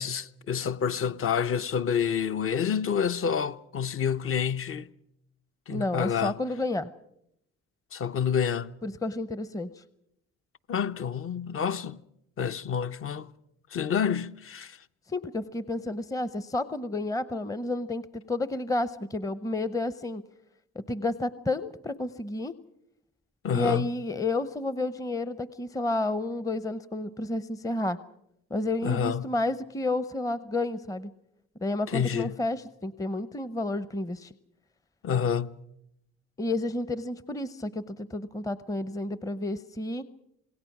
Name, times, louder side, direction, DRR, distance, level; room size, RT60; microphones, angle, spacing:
voice 1, 0.0-4.9 5.7-6.4 7.9-8.7 10.7-12.0 12.4-13.3 13.7-14.8 23.4-23.9 28.8-29.3 31.9-32.4 35.0-35.6, left 7 dB, 45° left, 0.8 m, -28 dB
voice 2, 5.7-6.9 8.8-9.8 15.1-20.2 20.8-22.6 23.5-28.0 28.5-31.1 31.6-34.3 36.4-40.1, left 2 dB, 10° left, 0.7 m, -31 dB
26.5 x 19.5 x 6.0 m
supercardioid pair, 80°, 31 cm